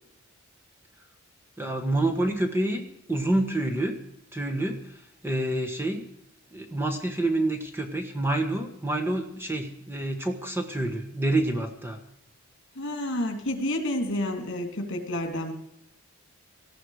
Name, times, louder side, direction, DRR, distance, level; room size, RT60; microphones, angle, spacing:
voice 1, 1.6-2.8 3.1-4.0 4.3-6.0 6.5-12.0, right 1 dB, 10° right, 4 dB, 1.5 m, -28 dB
voice 2, 12.8-15.5, left 1 dB, 60° left, 6 dB, 2.8 m, -29 dB
19.0 x 13.5 x 4.9 m, 0.82 s
head